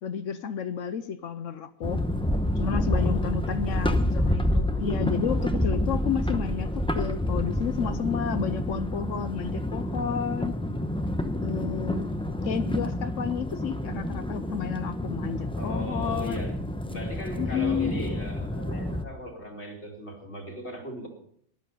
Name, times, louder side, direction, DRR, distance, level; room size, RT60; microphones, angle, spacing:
voice 1, 0.0-2.0 2.6-10.5 11.4-12.1 12.4-16.4 16.9-17.0 17.4-18.0, left 8 dB, 70° left, 1.0 m, -31 dB
sound 1, 1.8-19.0, left 1 dB, 5° left, 0.7 m, -28 dB
voice 2, 2.9-3.9 15.5-16.6 16.9-21.1, equal, 55° left, 2.9 m, -39 dB
13.5 x 11.0 x 5.6 m
omnidirectional pair, 1.4 m